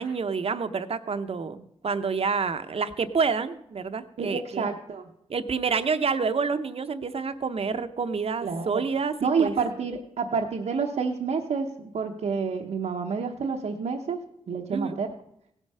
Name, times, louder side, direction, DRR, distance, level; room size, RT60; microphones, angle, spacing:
voice 1, 0.0-4.7 5.3-9.5 14.7-15.0, right 5 dB, 55° right, 10 dB, 0.8 m, -28 dB
voice 2, 4.2-5.1 8.4-8.8 9.2-14.2 14.5-15.1, right 5 dB, 80° right, 0 dB, 1.0 m, -28 dB
16.5 x 8.2 x 5.5 m, 0.76 s
wide cardioid pair, 85°, 12 cm